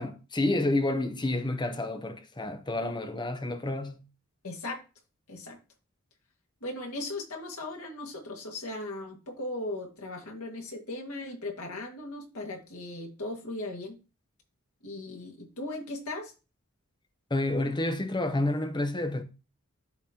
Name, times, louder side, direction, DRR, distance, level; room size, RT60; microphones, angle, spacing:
voice 1, 0.0-4.0 17.3-19.2, left 2 dB, 20° left, 0.8 m, -29 dB
voice 2, 4.4-4.8 5.3-5.6 6.6-14.0 14.8-16.3, left 2 dB, 90° left, 1.9 m, -38 dB
12.0 x 4.1 x 2.9 m
head